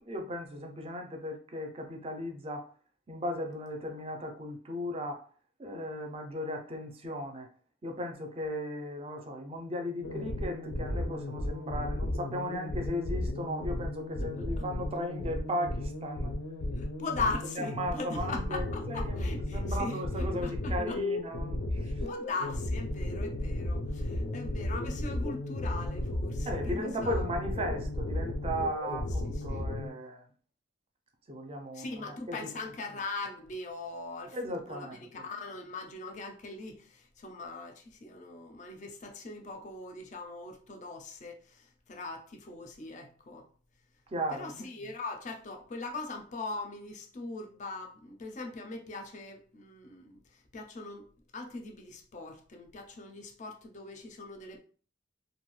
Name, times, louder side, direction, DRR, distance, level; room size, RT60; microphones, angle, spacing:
voice 1, 0.0-2.7 3.1-5.3 5.6-7.5 7.8-16.4 17.6-22.1 26.4-30.3 31.3-32.5 34.3-35.2 44.1-44.6, equal, 30° right, 0.4 m, -36 dB
sound 1, 10.0-29.9, left 1 dB, 85° left, 0.5 m, -34 dB
voice 2, 16.8-21.0 21.8-27.2 29.2-29.6 31.7-43.4 44.3-51.1 51.3-54.6, left 3 dB, 40° left, 0.4 m, -40 dB
2.5 x 2.2 x 3.1 m
head